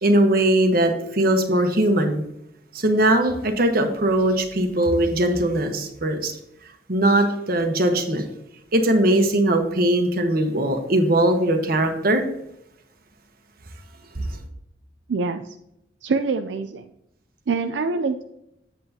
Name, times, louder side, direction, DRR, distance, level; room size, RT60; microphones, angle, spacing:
voice 1, 0.0-2.2 2.7-6.3 6.9-8.2 8.7-12.2 14.1-14.4, right 1 dB, 55° right, 5 dB, 1.2 m, -20 dB
voice 2, 15.1-15.4 16.0-16.9 17.5-18.2, right 4 dB, 85° right, 7 dB, 0.5 m, -24 dB
8.3 x 8.0 x 2.8 m, 0.81 s
head